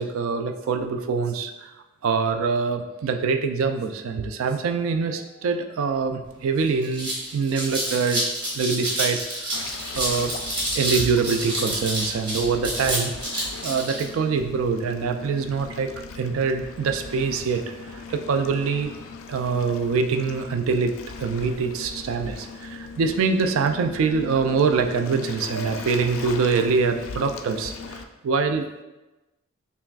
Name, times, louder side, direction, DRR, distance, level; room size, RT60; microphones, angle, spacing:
voice 1, 0.0-1.7 2.0-8.2 8.5-9.6 9.9-10.3 10.7-18.9 19.3-20.9 21.2-28.8, right 5 dB, 70° right, 6 dB, 0.3 m, -24 dB
sound 1, 6.2-6.3 6.7-14.0, right 1 dB, 20° right, 0.9 m, -28 dB
Waves surf, 9.5-28.0, left 4 dB, 70° left, 0.3 m, -39 dB
5.8 x 2.3 x 2.3 m, 1.1 s
head